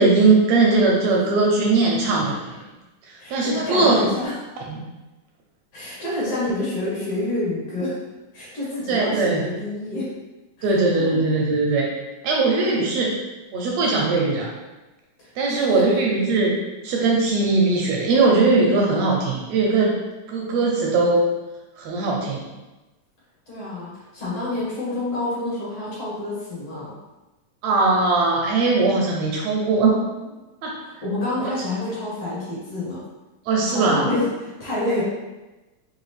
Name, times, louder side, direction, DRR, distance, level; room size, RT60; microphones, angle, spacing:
voice 1, 0.0-2.6 3.3-4.0 4.7-4.8 8.9-9.4 10.6-11.9 12.2-13.1 13.5-14.5 15.4-16.5 16.8-19.9 20.3-21.2 21.8-22.4 27.6-29.9 30.6-30.7 31.4-31.5 33.5-34.1, right 3 dB, 75° right, -2 dB, 1.6 m, -20 dB
voice 2, 3.2-4.3 5.7-8.0 8.3-10.1 10.6-11.2 15.2-16.0 23.5-26.9 30.8-33.0 33.7-35.0, left 1 dB, 55° left, -8 dB, 2.1 m, -28 dB
5.5 x 2.5 x 3.2 m, 1.1 s
omnidirectional pair, 3.6 m